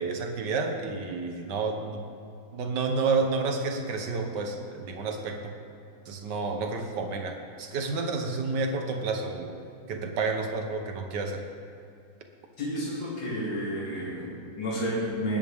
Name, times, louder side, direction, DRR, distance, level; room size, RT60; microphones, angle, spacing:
voice 1, 0.0-2.1 2.5-5.6 6.1-9.5 9.9-11.4, right 4 dB, 70° right, 4 dB, 1.8 m, -30 dB
voice 2, 12.6-15.4, equal, 80° left, -5 dB, 3.4 m, -31 dB
20.0 x 9.7 x 3.6 m, 2.5 s
omnidirectional pair, 2.0 m